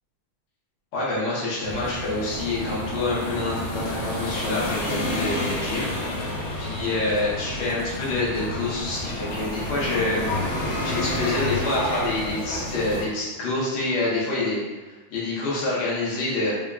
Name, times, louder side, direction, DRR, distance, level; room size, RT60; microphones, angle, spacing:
voice 1, 0.9-5.9 6.6-10.3 10.8-14.6 15.1-16.5, left 2 dB, 60° left, -7 dB, 1.4 m, -27 dB
sound 1, 1.6-13.0, left 1 dB, 75° left, 0.6 m, -30 dB
3.5 x 3.3 x 2.3 m, 1.2 s
omnidirectional pair, 2.4 m